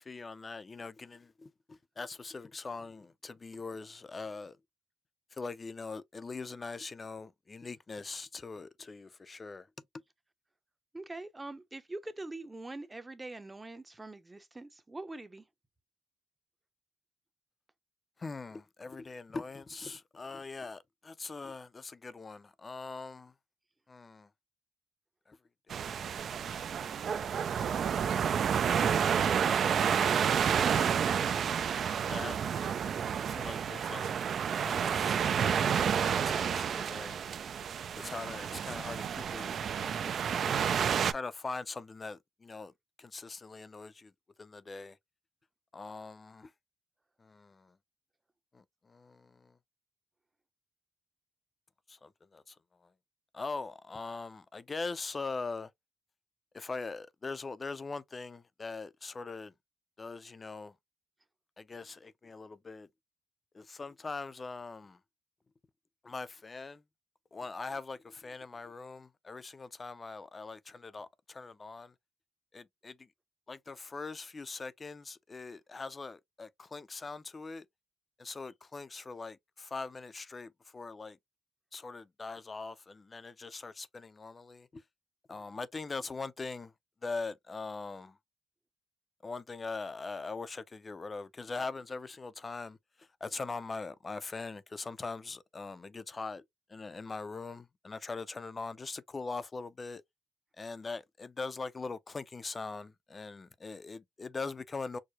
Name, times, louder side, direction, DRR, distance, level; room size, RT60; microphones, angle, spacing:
voice 1, 0.1-4.6 5.3-9.7 18.2-23.3 23.9-24.3 25.3-25.4 25.7-26.2 26.5-26.6 30.4-30.7 31.0-32.8 33.2-34.1 34.6-35.2 35.5-37.2 37.7-39.5 39.8-40.5 40.8-42.7 43.0-44.1 44.4-45.0 45.7-46.5 47.2-47.7 48.5-49.5 51.9-52.5 53.3-55.7 56.5-59.5 60.0-60.7 61.6-62.9 63.5-65.0 66.0-66.8 67.3-71.9 72.5-73.0 73.5-77.7 78.2-81.2 81.7-84.8 85.3-86.7 87.0-88.2 89.2-92.8 93.2-96.4 96.7-100.0 100.6-105.0, left 4 dB, 30° left, 0.4 m, -42 dB
voice 2, 10.9-15.4, right 2 dB, 15° right, 0.6 m, -43 dB
sound 1, 25.7-41.1, right 7 dB, 55° right, 0.3 m, -30 dB
4.7 x 2.0 x 2.8 m
cardioid pair, 90°, 0 cm